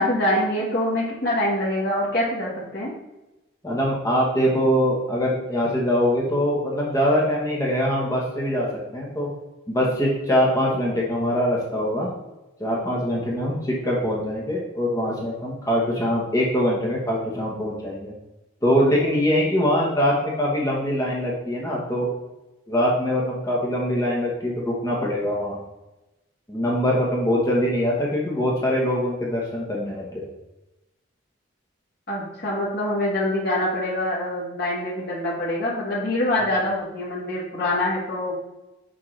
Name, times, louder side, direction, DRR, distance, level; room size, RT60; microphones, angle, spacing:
voice 1, 0.0-2.9 32.1-38.3, left 1 dB, 50° left, -7 dB, 1.5 m, -25 dB
voice 2, 3.6-8.7 8.9-9.3 9.7-12.1 12.6-18.1 18.6-22.1 22.7-25.6 26.5-30.2, equal, 15° left, -4 dB, 1.1 m, -23 dB
6.2 x 5.5 x 3.3 m, 1.0 s
head